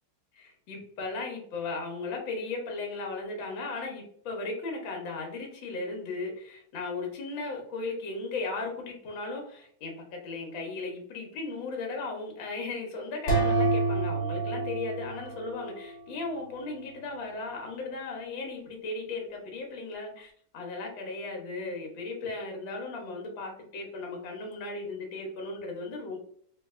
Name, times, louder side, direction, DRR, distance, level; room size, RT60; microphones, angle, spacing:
voice 1, 0.4-26.2, left 3 dB, 70° left, 1 dB, 1.7 m, -36 dB
sound 1, 13.3-16.0, right 3 dB, 55° left, 1.7 m, -28 dB
4.0 x 2.7 x 2.4 m, 0.63 s
omnidirectional pair, 2.2 m